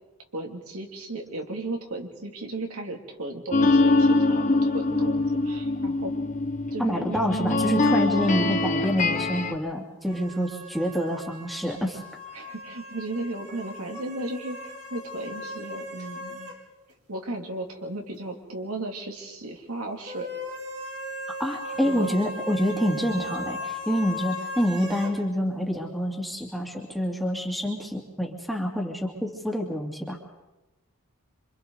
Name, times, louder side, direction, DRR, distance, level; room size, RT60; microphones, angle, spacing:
voice 1, 0.3-6.1 6.7-7.2 12.3-16.5 17.1-20.3 21.8-22.2, right 2 dB, 75° right, 2 dB, 2.7 m, -35 dB
sound 1, 3.5-9.5, left 2 dB, 35° left, 1.4 m, -23 dB
voice 2, 6.8-12.0 21.4-30.2, equal, ahead, -1 dB, 2.5 m, -27 dB
sound 2, 10.0-16.6 16.9-17.0 20.0-25.2, left 1 dB, 50° right, 3.5 m, -37 dB
27.0 x 26.0 x 4.0 m, 1.0 s
head